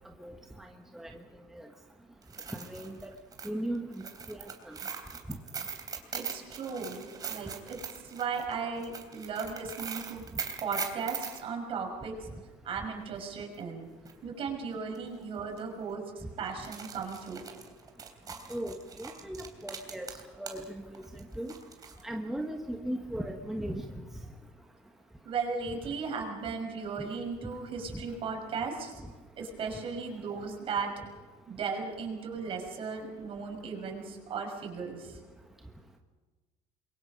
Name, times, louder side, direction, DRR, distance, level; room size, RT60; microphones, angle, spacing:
sound 1, 2.2-11.4 13.6-13.7 14.0-14.1 14.9-15.2 15.5-15.6 16.5-20.7 20.9-22.0, right 6 dB, 30° right, 3.3 m, -41 dB
voice 1, 2.5-3.1 3.4-4.0 4.3-4.8 18.5-20.1 20.4-20.6 21.1-21.5 22.0-23.9, right 1 dB, 5° right, 2 dB, 1.4 m, -37 dB
voice 2, 6.1-10.2 10.6-12.3 12.6-13.9 14.2-17.5 25.2-28.9 29.4-30.9 31.5-35.2, right 5 dB, 45° right, 2 dB, 6.0 m, -36 dB
28.0 x 23.0 x 5.3 m, 1.3 s
cardioid pair, 135°, 13 cm